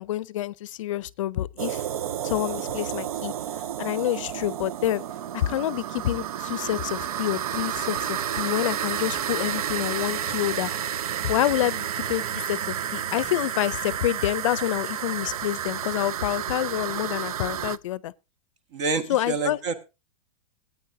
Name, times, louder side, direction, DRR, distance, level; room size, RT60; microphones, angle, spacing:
voice 1, 0.0-1.9 2.2-3.3 3.8-5.0 5.3-10.7 11.2-18.1 19.1-19.6, left 13 dB, 60° left, 0.5 m, -27 dB
sound 1, 1.6-17.8, right 10 dB, 90° right, 0.5 m, -31 dB
voice 2, 18.7-19.8, right 4 dB, 50° right, 1.6 m, -28 dB
18.0 x 9.1 x 2.7 m
supercardioid pair, 165°, 18 cm